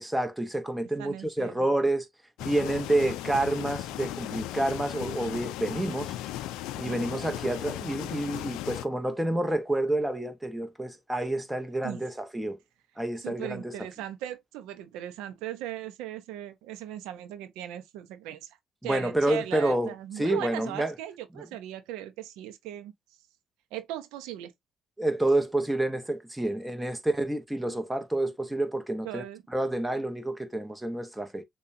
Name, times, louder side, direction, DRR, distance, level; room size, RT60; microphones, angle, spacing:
voice 1, 0.0-2.1 2.4-6.1 6.8-12.6 13.0-13.7 18.8-20.9 25.0-29.2 29.5-31.4, right 1 dB, 10° right, 0.9 m, -29 dB
voice 2, 1.0-1.6 6.9-7.2 11.8-12.0 13.2-18.6 18.8-22.9 23.7-24.5 29.0-29.4, right 12 dB, 90° right, 0.6 m, -38 dB
sound 1, 2.4-8.9, left 14 dB, 85° left, 0.3 m, -36 dB
6.7 x 2.3 x 2.6 m
supercardioid pair, 75°, 0 cm